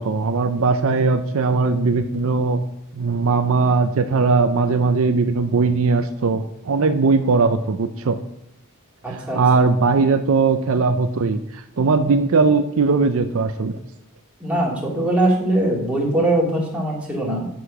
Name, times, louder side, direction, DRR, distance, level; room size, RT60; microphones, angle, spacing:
voice 1, 0.0-2.6 2.9-8.2 9.1-13.8, right 4 dB, 70° right, 9 dB, 0.5 m, -19 dB
voice 2, 9.0-9.4 14.4-17.5, right 1 dB, 5° right, -4 dB, 2.5 m, -21 dB
7.7 x 6.4 x 6.0 m, 0.78 s
head